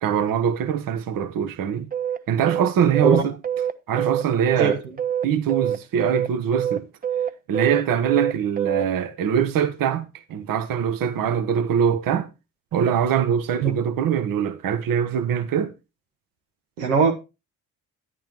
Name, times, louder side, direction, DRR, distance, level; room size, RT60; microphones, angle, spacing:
voice 1, 0.0-1.9 2.3-3.4 3.9-4.8 5.2-6.8 7.5-12.3 12.7-15.7, right 8 dB, 55° right, 1.0 m, -23 dB
sound 1, 1.9-8.9, right 9 dB, 20° right, 0.5 m, -25 dB
voice 2, 16.8-17.1, right 5 dB, 90° right, 1.0 m, -19 dB
9.2 x 8.7 x 2.9 m
hypercardioid pair, 45°, 40 cm